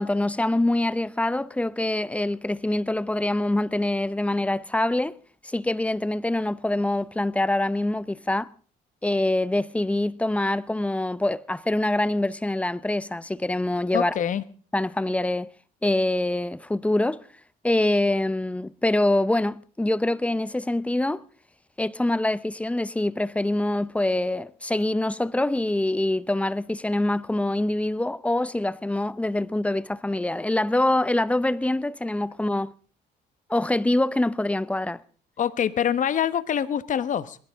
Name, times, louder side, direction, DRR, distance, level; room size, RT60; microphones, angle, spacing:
voice 1, 0.0-5.1 5.4-8.5 9.0-14.2 14.7-15.5 15.8-17.2 17.6-21.2 21.8-32.7 33.5-35.0, left 1 dB, 5° left, 0.6 m, -25 dB
voice 2, 13.9-14.4 35.4-37.4, left 9 dB, 50° left, 1.2 m, -25 dB
21.0 x 16.0 x 3.7 m
cardioid pair, 115°, 17 cm